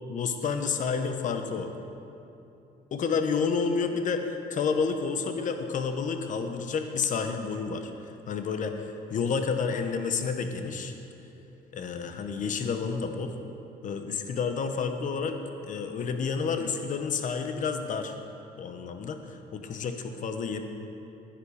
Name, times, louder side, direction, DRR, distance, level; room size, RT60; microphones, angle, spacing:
voice 1, 0.1-1.7 2.9-10.9 11.7-13.3 13.8-15.4 15.6-18.2 18.5-20.6, left 5 dB, 50° left, 6 dB, 1.1 m, -30 dB
16.0 x 9.9 x 4.9 m, 2.8 s
cardioid pair, 110°, 17 cm